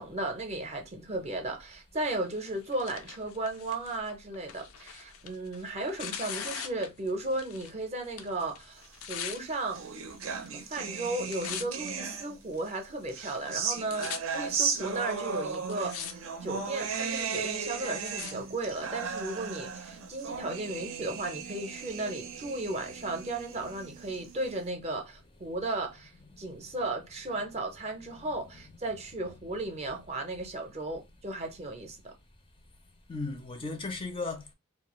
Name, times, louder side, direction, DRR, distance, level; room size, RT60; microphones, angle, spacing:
voice 1, 0.0-8.8 9.1-10.0 10.5-26.1 26.4-32.1, right 2 dB, 30° right, 0.5 m, -35 dB
Tearing, 2.3-7.8 8.0-9.4 10.1-10.6 10.9-11.9 12.5-12.6 13.3-13.4 13.6-14.2 14.9-15.0 15.5-16.1 16.4-16.9 17.4-18.3 19.1-19.2, left 8 dB, 90° left, 0.4 m, -41 dB
sound 1, 9.2-12.6 13.1-24.6, right 5 dB, 80° right, 0.5 m, -36 dB
voice 2, 28.2-28.7 29.2-29.3 33.1-34.5, left 3 dB, 25° left, 0.4 m, -37 dB
2.3 x 2.2 x 2.9 m
head